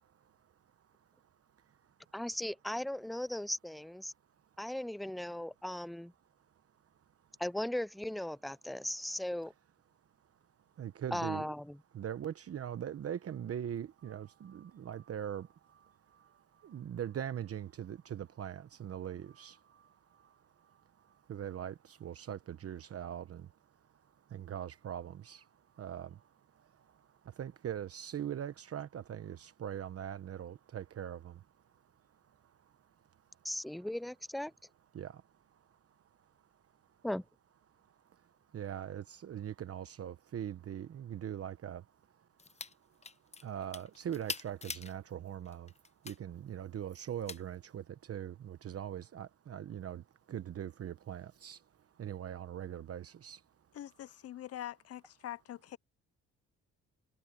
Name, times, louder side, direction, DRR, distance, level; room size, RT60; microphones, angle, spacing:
voice 1, 2.1-4.1 4.6-6.1 7.4-9.5 11.1-11.8 33.4-34.5 37.0-37.2, left 1 dB, ahead, 0.4 m, -37 dB
voice 2, 10.8-11.4 11.9-15.5 16.6-19.6 21.3-23.4 24.3-25.4 25.8-26.1 27.4-31.3 34.9-35.1 38.5-41.8 43.4-45.7 46.0-50.0 50.3-51.6 52.0-53.4, right 9 dB, 50° right, 1.0 m, -41 dB
sound 1, 42.4-42.7 43.0-44.9 45.4-46.2 47.3-47.4, left 4 dB, 20° left, 0.8 m, -43 dB
voice 3, 53.7-55.8, left 12 dB, 55° left, 0.6 m, -44 dB
cardioid pair, 90°, 30 cm